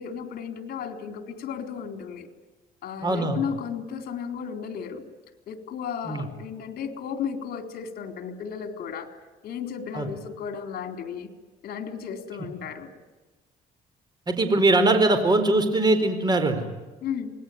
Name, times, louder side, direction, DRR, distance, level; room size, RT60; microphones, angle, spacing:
voice 1, 0.0-2.3 2.8-5.0 5.5-9.1 9.4-11.3 11.6-12.9 17.0-17.3, left 7 dB, 65° left, 7 dB, 3.9 m, -34 dB
voice 2, 3.0-3.4 6.1-6.2 9.9-10.1 14.3-16.6, right 2 dB, 25° right, 8 dB, 4.4 m, -21 dB
27.0 x 20.0 x 9.5 m, 1.2 s
cardioid pair, 110°, 17 cm